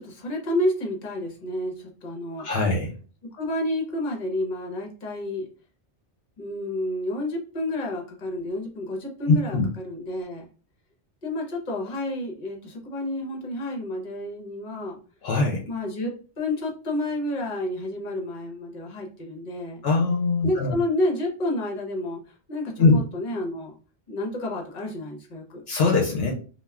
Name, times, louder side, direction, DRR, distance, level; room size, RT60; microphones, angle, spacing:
voice 1, 0.0-2.5 3.3-5.4 6.4-10.4 11.2-15.0 15.7-19.8 20.4-23.7 24.1-25.6, left 1 dB, 50° left, 1 dB, 0.9 m, -30 dB
voice 2, 2.4-2.9 9.3-9.7 15.2-15.6 19.8-20.8 22.8-23.0 25.7-26.3, left 3 dB, 70° left, 0 dB, 0.8 m, -21 dB
2.3 x 2.2 x 3.4 m, 0.37 s
omnidirectional pair, 1.1 m